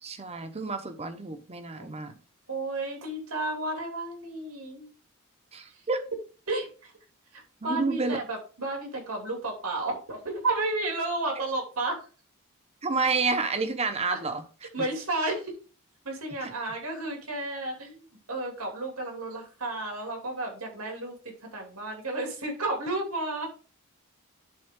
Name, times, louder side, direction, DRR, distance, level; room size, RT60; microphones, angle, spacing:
voice 1, 0.0-2.2 5.5-6.0 7.6-8.2 12.8-14.4 14.8-14.9 16.4-16.5, right 3 dB, 30° right, 0.9 m, -29 dB
voice 2, 2.5-4.9 6.5-6.9 7.3-12.0 14.1-14.2 14.7-15.5 16.0-21.1 21.5-23.5, right 2 dB, 90° right, 2.8 m, -32 dB
10.5 x 4.0 x 3.7 m
head